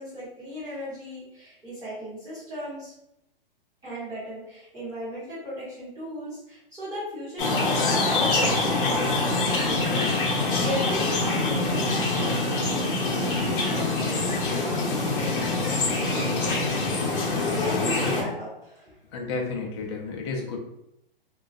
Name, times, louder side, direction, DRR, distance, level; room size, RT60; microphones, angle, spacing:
voice 1, 0.0-2.9 3.8-16.6 17.5-19.0, equal, 10° right, -10 dB, 1.0 m, -36 dB
sound 1, 7.4-18.2, left 2 dB, 65° left, 0.7 m, -25 dB
voice 2, 17.7-18.2 19.1-20.6, left 3 dB, 30° left, 1 dB, 0.4 m, -32 dB
2.2 x 2.2 x 2.5 m, 0.81 s
hypercardioid pair, 145°, 29 cm